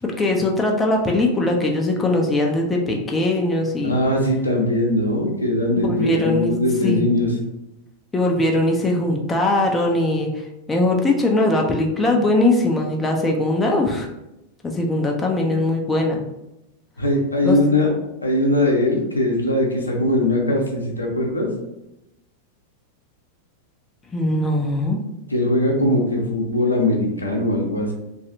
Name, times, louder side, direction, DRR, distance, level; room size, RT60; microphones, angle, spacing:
voice 1, 0.0-3.9 5.8-6.5 6.8-7.0 8.1-10.3 10.7-14.1 14.6-16.2 17.4-17.6 24.1-25.0, left 2 dB, 15° left, 0 dB, 0.5 m, -20 dB
voice 2, 3.8-7.3 17.0-17.9 18.2-21.5 25.3-27.9, left 1 dB, 80° left, -1 dB, 0.7 m, -20 dB
3.2 x 2.6 x 2.7 m, 0.90 s
figure-of-eight pair, 90°, 0 cm